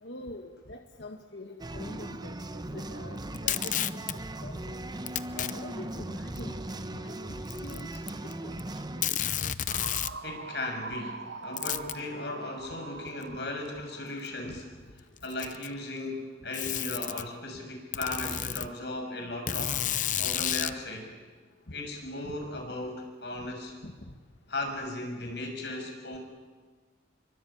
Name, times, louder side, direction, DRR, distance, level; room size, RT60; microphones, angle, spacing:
voice 1, 0.0-4.1 4.4-4.8 5.4-7.3 7.6-8.6 13.3-13.4 14.4-14.6 22.2-22.4 23.8-23.9, left 2 dB, 90° left, 3 dB, 1.9 m, -45 dB
sound 1, 1.6-9.1, right 1 dB, 25° right, 0.9 m, -38 dB
Packing tape duct tape, 3.3-4.1 5.1-5.5 6.4-6.5 7.4-8.3 8.6-8.7 9.0-10.2 11.6-12.0 13.2-13.3 14.3-14.4 15.2-15.8 16.5-17.2 17.9-18.7 19.5-20.8, left 10 dB, 45° left, 0.8 m, -31 dB
sound 2, 9.7-14.7, right 4 dB, 80° right, 1.0 m, -43 dB
voice 2, 10.2-14.6 15.2-19.8 20.1-21.1 21.7-23.7 24.5-26.2, left 2 dB, 70° left, 3 dB, 6.6 m, -36 dB
27.0 x 24.0 x 8.9 m, 1.4 s
head